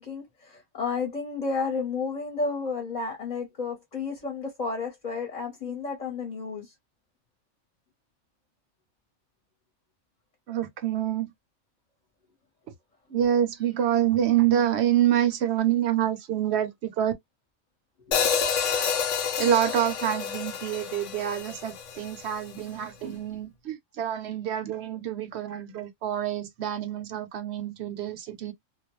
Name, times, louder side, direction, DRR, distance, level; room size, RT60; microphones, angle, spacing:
voice 1, 0.0-6.7 18.0-18.2, left 4 dB, 40° left, 0.9 m, -32 dB
voice 2, 10.5-11.3 13.1-17.1 19.4-28.5, right 10 dB, 65° right, 0.8 m, -26 dB
Hi-hat, 18.1-22.3, left 7 dB, 85° left, 1.0 m, -28 dB
2.3 x 2.2 x 3.0 m
omnidirectional pair, 1.2 m